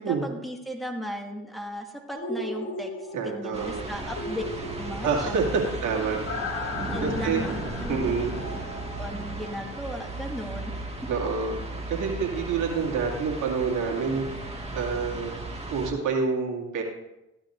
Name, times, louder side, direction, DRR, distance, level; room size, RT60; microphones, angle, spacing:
voice 1, 0.0-4.4 4.8-5.4 6.9-8.1 9.0-11.1, equal, ahead, 1 dB, 1.8 m, -36 dB
sound 1, 2.1-10.0 10.4-10.5, left 2 dB, 55° left, 3.1 m, -37 dB
voice 2, 3.1-3.9 5.0-5.4 5.8-6.5 7.0-7.4 7.9-8.4 11.1-11.6 11.9-14.3 14.7-16.8, right 5 dB, 90° right, 0 dB, 2.3 m, -28 dB
sound 2, 3.5-15.9, right 2 dB, 20° right, 1.8 m, -35 dB
15.0 x 12.0 x 2.6 m, 0.93 s
cardioid pair, 90°, 30 cm